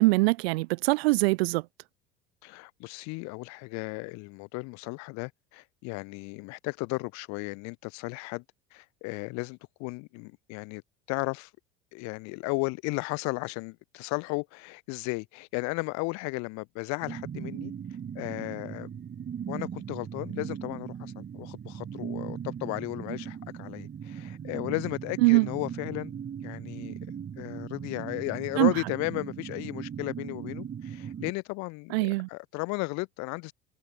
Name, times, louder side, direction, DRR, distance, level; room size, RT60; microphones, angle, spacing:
voice 1, 0.0-1.6 25.2-25.5 28.6-28.7 31.9-32.3, right 23 dB, 80° right, 0.6 m, -22 dB
voice 2, 2.4-8.4 8.7-10.8 11.1-11.5 11.9-17.7 18.1-18.9 19.5-26.1 26.4-27.0 27.4-33.5, left 28 dB, 65° left, 0.8 m, -35 dB
sound 1, 17.0-31.3, right 8 dB, 35° right, 2.4 m, -39 dB
hypercardioid pair, 80°, 31 cm